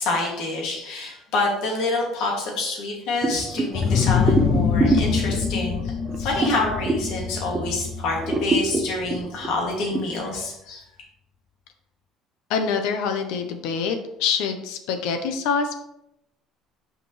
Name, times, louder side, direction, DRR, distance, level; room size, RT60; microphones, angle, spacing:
voice 1, 0.0-10.8, left 3 dB, 60° left, -1 dB, 2.3 m, -27 dB
sound 1, 3.2-7.8 8.2-10.0, right 3 dB, 20° right, 0.7 m, -26 dB
sound 2, 3.7-9.3, left 6 dB, 35° left, 0.5 m, -25 dB
voice 2, 12.5-15.8, left 6 dB, 85° left, 6 dB, 0.9 m, -25 dB
8.9 x 5.1 x 3.3 m, 0.82 s
cardioid pair, 175°, 0 cm